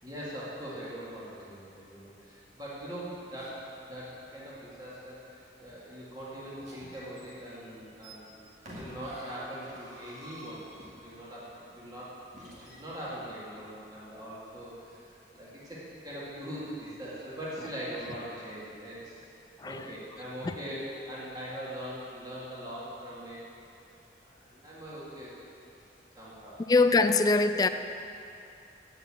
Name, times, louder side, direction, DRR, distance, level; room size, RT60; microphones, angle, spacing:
voice 1, 0.0-8.3 8.7-10.7 11.0-15.1 15.3-19.2 19.6-23.4 24.2-25.3 26.2-26.6, equal, 20° right, -8 dB, 2.3 m, -41 dB
sound 1, 3.3-3.8 6.6-11.3 12.3-12.8, equal, 40° right, 2.0 m, -48 dB
voice 2, 26.7-27.7, left 3 dB, 20° left, 9 dB, 0.3 m, -23 dB
8.1 x 7.6 x 8.5 m, 2.7 s
head